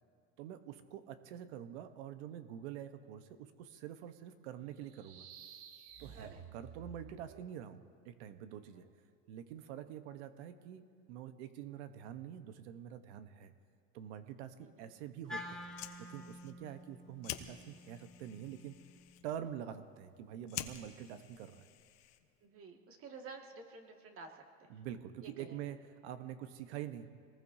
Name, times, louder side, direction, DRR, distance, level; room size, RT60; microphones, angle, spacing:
voice 1, 0.4-5.3 6.0-8.8 9.3-13.5 13.9-15.6 16.0-18.8 19.2-21.7 24.7-25.8 26.0-27.1, right 10 dB, 75° right, 9 dB, 1.1 m, -46 dB
sound 1, 4.8-7.6, right 7 dB, 55° right, 1.3 m, -53 dB
voice 2, 14.6-15.0 22.4-24.8 25.2-25.6, right 4 dB, 40° right, 2 dB, 2.1 m, -52 dB
Wind instrument woodwind instrument, 15.3-19.5, left 1 dB, ahead, 1.6 m, -50 dB
Fire, 15.5-22.5, left 13 dB, 65° left, 1.1 m, -49 dB
26.0 x 19.5 x 2.8 m, 2.3 s
supercardioid pair, 115°, 34 cm